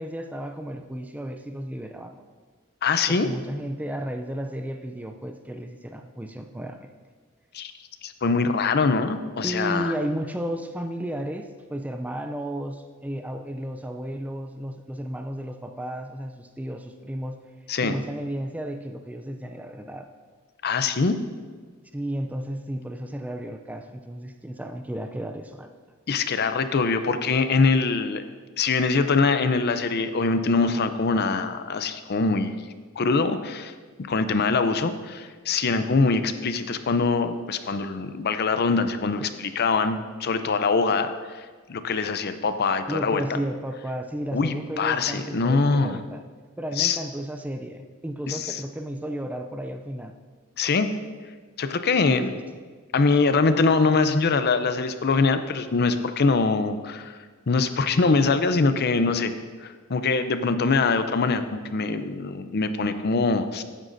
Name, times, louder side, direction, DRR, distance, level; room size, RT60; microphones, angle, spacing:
voice 1, 0.0-2.2 3.1-6.9 9.4-17.4 17.8-20.1 21.9-25.7 42.9-46.2 46.6-50.2 52.0-52.4, right 1 dB, 5° right, 5 dB, 0.4 m, -33 dB
voice 2, 2.8-3.3 7.5-7.7 8.0-9.9 17.7-17.9 20.6-21.2 26.1-28.2 28.6-32.6 33.0-33.7 34.1-43.2 44.3-46.0 46.8-47.0 48.3-48.6 50.6-50.9 51.6-52.3 52.9-57.2 57.5-59.3 59.6-63.6, left 4 dB, 50° left, 10 dB, 0.5 m, -23 dB
15.0 x 9.0 x 2.6 m, 1.5 s
head